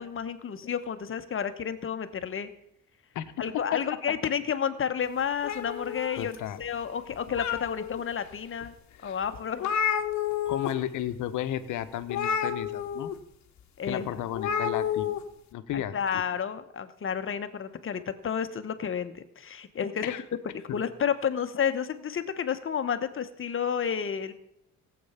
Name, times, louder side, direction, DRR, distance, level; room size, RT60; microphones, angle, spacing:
voice 1, 0.0-2.5 3.4-8.7 9.0-9.8 13.8-14.2 15.7-20.1 20.5-24.3, left 7 dB, 45° left, 10 dB, 1.1 m, -31 dB
sound 1, 5.4-6.6 7.1-8.0 8.6-8.7 9.1-9.2 9.3-10.7 11.0-11.2 12.1-13.1 14.3-15.2, left 8 dB, 65° left, 1.1 m, -30 dB
voice 2, 6.2-6.6 10.5-13.1 13.8-15.2 15.5-16.2 20.0-20.2 20.7-20.8, left 11 dB, 80° left, 11 dB, 1.0 m, -33 dB
16.5 x 7.9 x 5.7 m, 0.79 s
cardioid pair, 90°, 30 cm